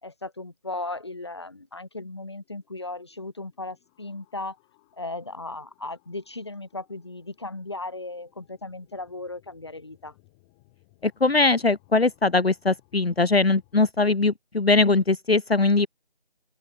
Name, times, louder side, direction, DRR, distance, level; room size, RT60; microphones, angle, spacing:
voice 1, 0.0-4.6 5.0-10.1, left 2 dB, 25° left, 2.2 m, -36 dB
sound 1, 1.7-13.9, left 29 dB, 5° left, 6.1 m, -64 dB
voice 2, 11.0-15.9, left 3 dB, 65° left, 1.0 m, -21 dB
open air
figure-of-eight pair, 170°, 32 cm